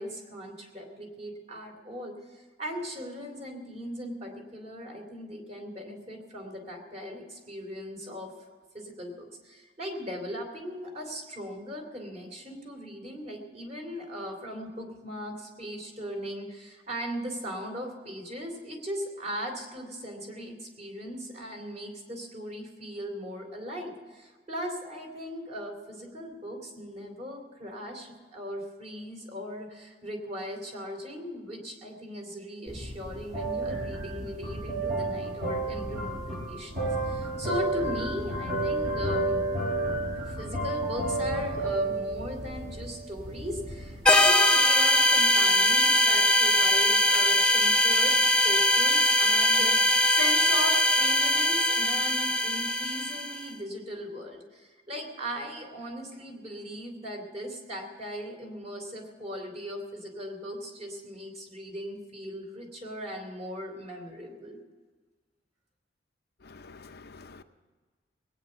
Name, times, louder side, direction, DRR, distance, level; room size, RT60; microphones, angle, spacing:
voice 1, 0.0-8.3 8.7-39.4 40.2-48.2 48.4-64.6, equal, 35° right, 2 dB, 3.2 m, -38 dB
sound 1, 32.7-44.3, right 2 dB, 50° right, 6.3 m, -31 dB
sound 2, 44.1-53.4, left 1 dB, 5° left, 0.8 m, -22 dB
voice 2, 66.4-67.4, left 4 dB, 60° left, 7 dB, 0.7 m, -48 dB
19.5 x 9.2 x 7.0 m, 1.4 s
head